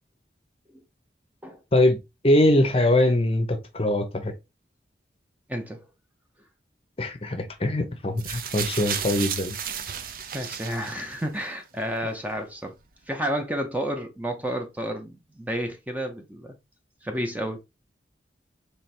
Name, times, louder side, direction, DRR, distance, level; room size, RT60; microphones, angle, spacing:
voice 1, 2.2-4.3 7.0-9.5, left 1 dB, 30° left, 0.7 m, -22 dB
voice 2, 5.5-5.8 10.3-12.7 13.1-16.6 17.0-17.6, equal, 10° right, 0.7 m, -31 dB
sound 1, 8.2-11.4 12.3-12.4, right 8 dB, 50° right, 0.6 m, -33 dB
4.5 x 3.4 x 3.3 m
head